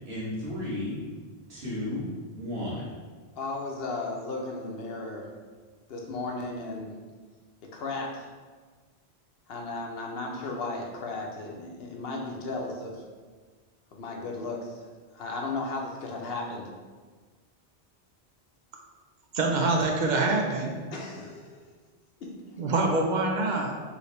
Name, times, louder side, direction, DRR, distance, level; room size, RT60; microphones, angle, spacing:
voice 1, 0.1-1.0 1.5-3.0, left 1 dB, 75° right, -8 dB, 1.7 m, -33 dB
voice 2, 3.4-5.3 5.9-6.9 7.6-8.3 9.5-13.0 13.9-14.9 15.1-16.7 20.9-21.6 22.2-22.3, left 3 dB, 70° left, 0 dB, 0.9 m, -35 dB
voice 3, 19.3-20.8 22.6-23.7, right 2 dB, 55° right, 1 dB, 0.6 m, -25 dB
4.9 x 3.0 x 3.2 m, 1.5 s
omnidirectional pair, 1.1 m